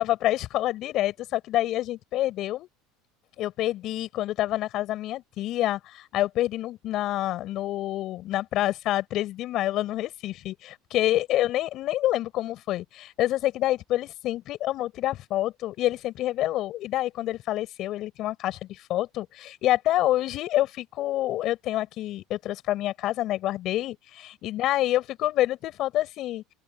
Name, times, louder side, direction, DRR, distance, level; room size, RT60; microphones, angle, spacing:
voice 1, 0.0-2.7 3.4-26.4, left 14 dB, 55° left, 6.3 m, -27 dB
open air
supercardioid pair, 95°, 0 cm